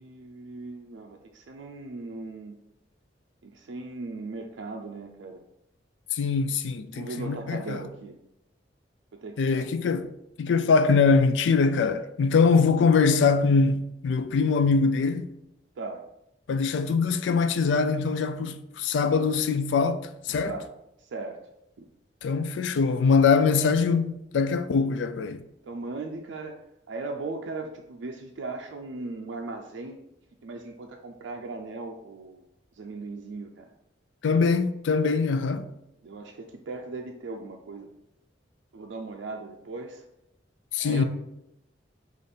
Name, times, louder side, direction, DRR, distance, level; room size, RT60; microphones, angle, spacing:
voice 1, 0.0-2.5 3.4-5.4 6.9-8.2 9.1-9.7 15.8-16.0 20.4-20.7 21.0-21.4 21.8-21.9 25.6-26.6 26.9-30.0 30.4-32.4 32.8-33.7 36.0-37.9 38.7-40.0 40.8-41.0, right 3 dB, 80° right, 0.4 m, -38 dB
voice 2, 6.1-7.8 9.4-10.1 10.4-15.3 16.5-20.6 22.2-25.4 34.2-35.7 40.7-41.0, left 5 dB, 80° left, 0.3 m, -23 dB
5.0 x 2.5 x 4.1 m
head